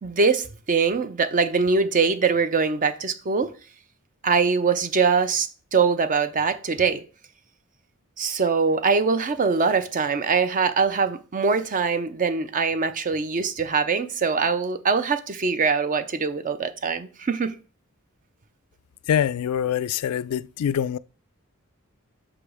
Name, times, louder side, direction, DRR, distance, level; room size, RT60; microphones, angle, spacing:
voice 1, 0.0-3.5 4.2-7.0 8.2-17.5, right 5 dB, 40° right, 0.5 m, -23 dB
voice 2, 19.1-21.0, left 9 dB, 80° left, 0.3 m, -24 dB
6.0 x 5.0 x 4.9 m
head